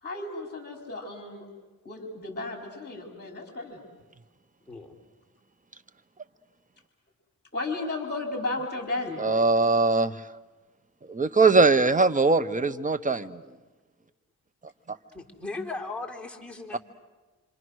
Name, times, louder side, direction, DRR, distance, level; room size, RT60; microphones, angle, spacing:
voice 1, 0.0-1.5 1.8-3.8 7.5-9.2, left 2 dB, 25° left, 2 dB, 3.9 m, -34 dB
voice 2, 4.7-5.0 15.1-16.8, left 3 dB, 5° left, -1 dB, 3.8 m, -37 dB
voice 3, 9.2-10.1 11.1-13.4, right 3 dB, 20° right, 10 dB, 0.9 m, -21 dB
27.5 x 26.0 x 6.3 m, 1.3 s
cardioid pair, 85°, 36 cm